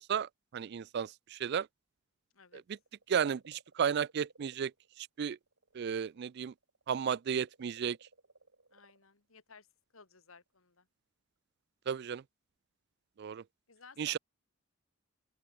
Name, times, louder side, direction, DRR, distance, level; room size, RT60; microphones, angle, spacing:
voice 1, 0.0-1.7 3.1-4.7 5.0-5.4 5.7-6.5 6.9-8.0 11.9-12.2 13.2-13.4 14.0-14.2, right 7 dB, 50° right, 0.3 m, -33 dB
sound 1, 2.7-6.2 6.5-9.1 10.1-10.2, right 2 dB, 70° right, 5.3 m, -63 dB
voice 2, 8.7-9.7 9.9-10.9 13.7-14.2, left 4 dB, 85° left, 2.2 m, -57 dB
open air
head